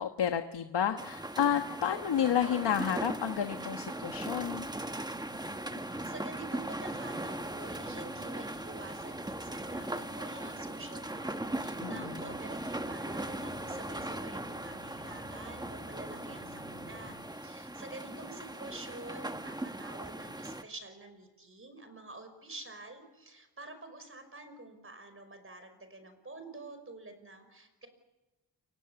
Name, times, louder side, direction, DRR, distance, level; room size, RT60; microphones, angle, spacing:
voice 1, 0.0-4.7 11.8-12.2, left 9 dB, 75° left, 7 dB, 1.4 m, -31 dB
sound 1, 1.0-20.6, right 1 dB, 10° right, 1.1 m, -39 dB
sound 2, 4.0-17.2, left 3 dB, 35° left, 6.6 m, -54 dB
voice 2, 5.8-27.9, right 2 dB, 30° right, 8 dB, 5.4 m, -48 dB
28.5 x 25.0 x 7.1 m, 1.1 s
wide cardioid pair, 110°, 41 cm